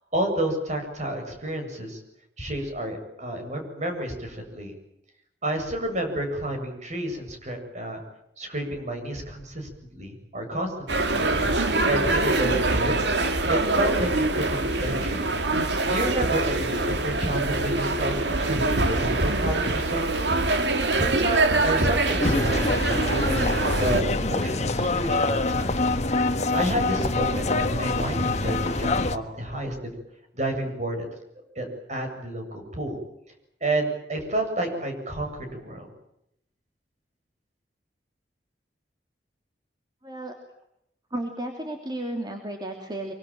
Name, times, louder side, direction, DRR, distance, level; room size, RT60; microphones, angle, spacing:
voice 1, 0.1-2.0 2.4-4.7 5.4-8.0 8.4-11.1 11.8-13.0 13.5-15.3 15.9-20.1 20.9-22.7 23.1-25.8 26.5-29.9 30.3-31.1 31.5-33.0 33.6-35.9, right 1 dB, 40° right, 4 dB, 8.0 m, -30 dB
sound 1, 10.9-24.0, right 2 dB, 70° right, 2.6 m, -24 dB
sound 2, 22.2-29.2, left 2 dB, 40° left, 1.6 m, -25 dB
voice 2, 40.0-40.3 41.1-43.1, right 1 dB, 25° right, 3 dB, 3.1 m, -33 dB
25.5 x 24.5 x 9.1 m, 0.78 s
head